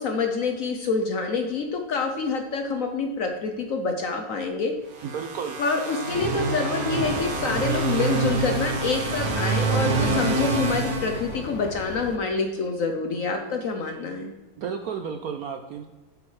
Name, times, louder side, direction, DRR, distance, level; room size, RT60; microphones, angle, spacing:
voice 1, 0.0-4.8 5.6-14.3, left 4 dB, 60° left, 5 dB, 0.9 m, -27 dB
sound 1, 4.9-11.8, right 3 dB, 55° right, 1.5 m, -26 dB
voice 2, 5.0-5.6 14.6-15.9, right 6 dB, 70° right, 6 dB, 0.8 m, -32 dB
sound 2, 7.0-12.2, left 6 dB, 85° left, 1.3 m, -39 dB
8.6 x 8.0 x 3.2 m, 1.2 s
omnidirectional pair, 2.0 m